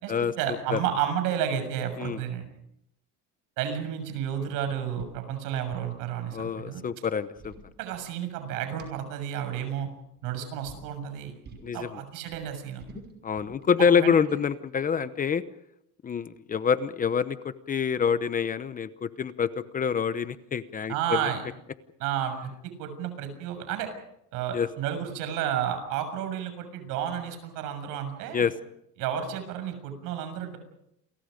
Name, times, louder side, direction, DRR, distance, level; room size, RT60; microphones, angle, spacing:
voice 1, 0.0-2.5 3.6-6.8 7.8-9.9 10.2-11.3 11.7-12.8 14.0-14.1 20.9-21.4 22.0-23.9 24.3-28.5 29.0-30.6, right 9 dB, 70° right, 8 dB, 6.8 m, -31 dB
sound 1, 5.0-5.2 5.5-6.0 7.1-8.4 8.8-8.9 10.0-10.3 10.6-10.9 11.4-11.8 12.1-13.6, right 3 dB, 30° right, 5.5 m, -47 dB
voice 2, 6.3-7.5 11.6-12.0 13.2-15.4 16.0-21.3 24.5-24.7 28.3-28.5, left 6 dB, 25° left, 13 dB, 0.9 m, -26 dB
29.0 x 23.0 x 5.2 m, 0.79 s
cardioid pair, 135°, 34 cm